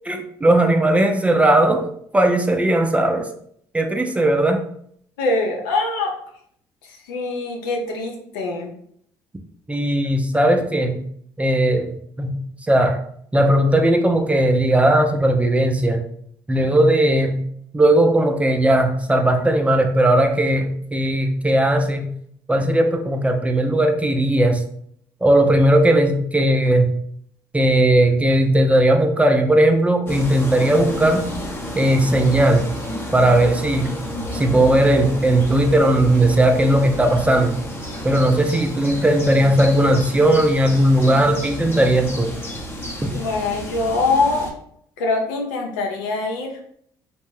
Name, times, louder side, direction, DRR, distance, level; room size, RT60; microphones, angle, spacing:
voice 1, 0.1-3.3 3.7-4.6 9.7-11.1 11.4-12.4 12.7-13.0 13.3-16.0 16.5-17.5 17.7-22.1 22.5-24.6 25.2-27.0 27.5-31.3 31.7-32.7 33.1-34.0 34.3-37.6 38.0-42.4 43.0-43.1, right 1 dB, 15° right, 5 dB, 0.4 m, -17 dB
voice 2, 5.2-6.1 6.8-8.7 43.1-44.5 45.0-46.6, left 3 dB, 90° left, 1 dB, 0.6 m, -23 dB
sound 1, 30.1-44.5, equal, 20° left, 0.7 m, -31 dB
2.6 x 2.1 x 3.1 m, 0.66 s
supercardioid pair, 65°, 10 cm